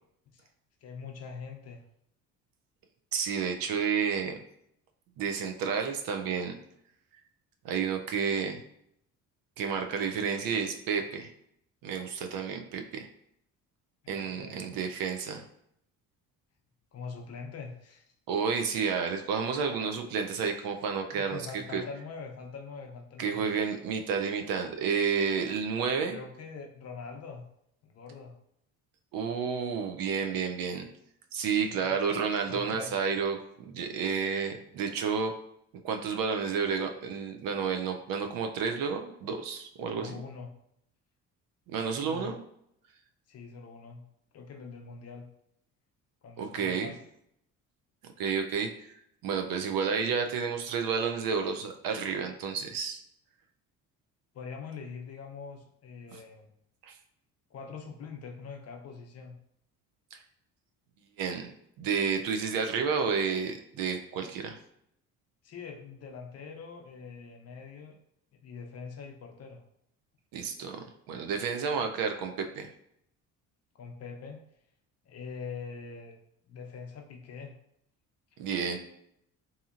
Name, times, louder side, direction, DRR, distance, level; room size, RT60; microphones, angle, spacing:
voice 1, 0.8-1.8 14.0-14.6 16.9-18.0 21.1-23.5 26.1-27.4 27.8-28.4 31.6-32.0 32.5-32.9 39.9-40.5 42.0-42.3 43.3-44.0 44.3-45.3 46.2-47.0 54.3-56.5 57.5-59.4 65.4-68.0 68.4-69.6 73.7-74.4 75.0-76.2 76.5-77.6, left 5 dB, 45° left, 3 dB, 0.6 m, -43 dB
voice 2, 3.1-4.4 5.2-6.6 7.6-8.6 9.6-11.3 11.8-13.1 14.1-15.4 18.3-21.4 21.7-21.8 23.2-26.2 29.1-30.9 31.3-35.3 35.8-40.2 41.7-42.4 46.4-46.9 48.0-48.9 49.2-53.0 56.1-56.2 56.8-56.9 60.1-60.2 61.2-61.5 61.8-64.6 70.3-72.7 78.4-78.8, right 6 dB, 70° right, 5 dB, 0.5 m, -31 dB
2.8 x 2.7 x 2.4 m, 0.73 s
cardioid pair, 95°, 36 cm